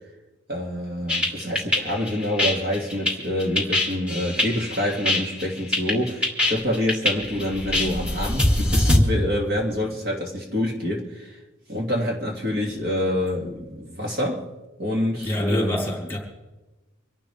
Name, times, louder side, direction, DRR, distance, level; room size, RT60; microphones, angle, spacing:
voice 1, 0.5-11.4 11.7-14.4 14.8-15.8, left 1 dB, 50° right, 2.3 m, -27 dB
sound 1, 1.1-9.0, left 1 dB, 5° right, 2.4 m, -23 dB
voice 2, 13.4-13.7 15.2-16.2, left 1 dB, 10° left, 4.2 m, -27 dB
26.0 x 11.5 x 3.5 m
head